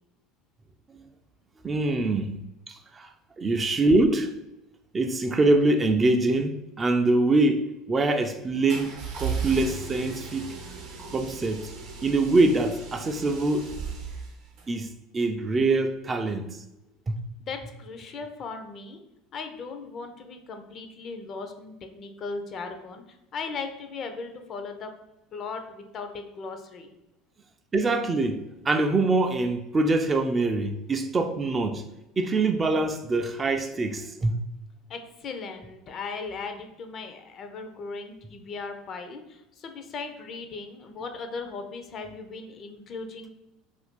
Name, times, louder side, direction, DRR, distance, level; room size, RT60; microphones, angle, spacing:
voice 1, 1.6-2.4 2.7-3.1 3.4-4.3 4.9-10.5 11.0-11.7 12.0-13.7 14.7-16.6 17.1-17.2 27.7-31.8 32.2-34.4, right 2 dB, 25° right, 0.3 m, -24 dB
sound 1, 8.7-14.7, right 5 dB, 60° right, 0.7 m, -36 dB
voice 2, 17.4-19.0 19.3-24.9 25.3-26.9 34.9-43.3, left 4 dB, 45° left, 0.5 m, -38 dB
2.5 x 2.3 x 3.6 m
hypercardioid pair, 75°, 0 cm